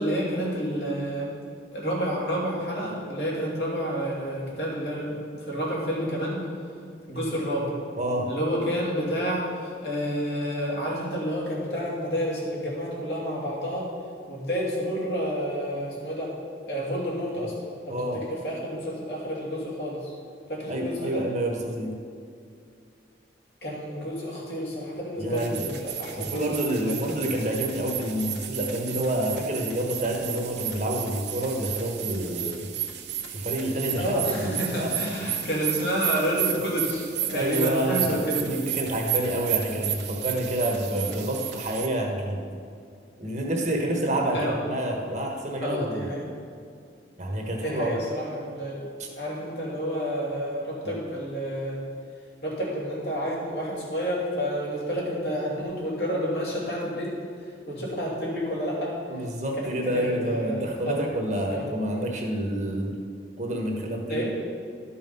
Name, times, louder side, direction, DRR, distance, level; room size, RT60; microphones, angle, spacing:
voice 1, 0.0-1.3 1.7-6.4 7.1-7.7 8.3-13.9 14.3-16.3 16.6-17.6 17.8-20.1 20.5-21.2 23.6-27.0 34.0-38.4 44.3-44.6 45.6-46.2 47.6-48.9 49.2-51.8 52.4-57.1 57.7-58.9 59.6-61.1 61.5-61.8 64.1-64.3, equal, 60° left, -5 dB, 2.7 m, -29 dB
voice 2, 8.0-8.3 17.9-18.2 20.7-21.9 25.2-25.7 26.2-32.7 33.3-35.3 37.3-42.4 43.2-46.1 47.2-48.0 49.0-49.1 50.8-50.9 59.1-62.9 63.4-64.3, right 1 dB, 40° right, 1 dB, 1.2 m, -28 dB
sound 1, 25.3-41.9, right 11 dB, 70° right, 0.7 m, -33 dB
12.0 x 5.6 x 5.5 m, 2.3 s
head